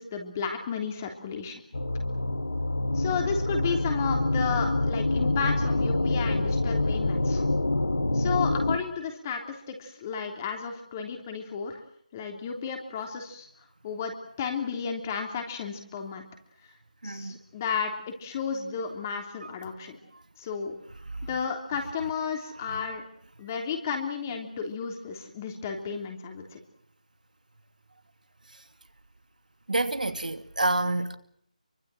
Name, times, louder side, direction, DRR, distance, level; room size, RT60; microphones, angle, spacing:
voice 1, 0.0-1.6 2.9-7.4 8.1-11.8 12.1-13.5 13.8-14.1 14.4-16.2 17.0-20.0 20.4-20.7 21.2-23.0 23.4-26.6, left 6 dB, 20° left, 3.2 m, -33 dB
sound 1, 1.7-8.8, left 2 dB, 80° left, 2.9 m, -26 dB
voice 2, 17.0-17.4 29.7-31.2, right 2 dB, 85° right, 2.6 m, -28 dB
25.5 x 24.0 x 7.7 m
figure-of-eight pair, 165°, 4 cm